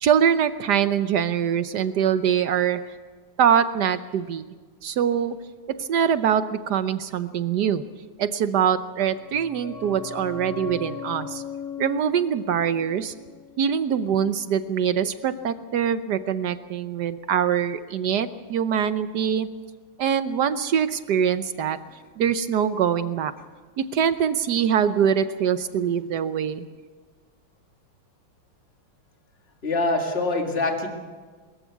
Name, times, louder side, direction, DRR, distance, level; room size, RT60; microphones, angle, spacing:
voice 1, 0.0-2.8 3.4-4.5 4.8-5.4 5.8-7.8 8.2-11.4 11.8-13.1 13.6-19.5 20.0-21.8 22.2-23.3 23.8-26.7, right 8 dB, 65° right, 12 dB, 1.1 m, -23 dB
sound 1, 8.9-14.3 14.6-14.7, left 6 dB, 55° left, 1.3 m, -39 dB
voice 2, 29.6-30.9, left 2 dB, 30° left, 2 dB, 2.3 m, -24 dB
22.5 x 14.5 x 8.2 m, 1.5 s
omnidirectional pair, 2.3 m